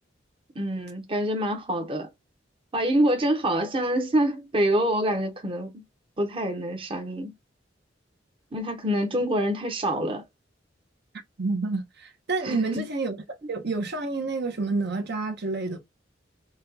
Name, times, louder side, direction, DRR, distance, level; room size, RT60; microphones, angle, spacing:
voice 1, 0.5-2.1 2.7-5.8 6.2-7.3 8.5-10.2 12.4-12.8, right 1 dB, 30° right, 0.8 m, -26 dB
voice 2, 11.4-13.2 13.5-15.8, right 3 dB, 60° right, 0.9 m, -29 dB
5.8 x 2.3 x 2.8 m
head